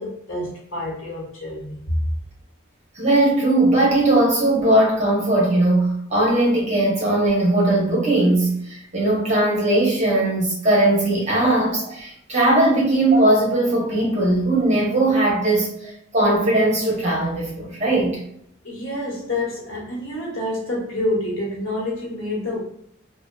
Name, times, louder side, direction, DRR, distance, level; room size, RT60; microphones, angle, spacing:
voice 1, 0.0-2.0 18.6-22.6, left 1 dB, 90° left, -5 dB, 1.0 m, -27 dB
voice 2, 3.0-18.2, right 1 dB, 35° right, -4 dB, 0.8 m, -19 dB
2.7 x 2.1 x 2.2 m, 0.71 s
head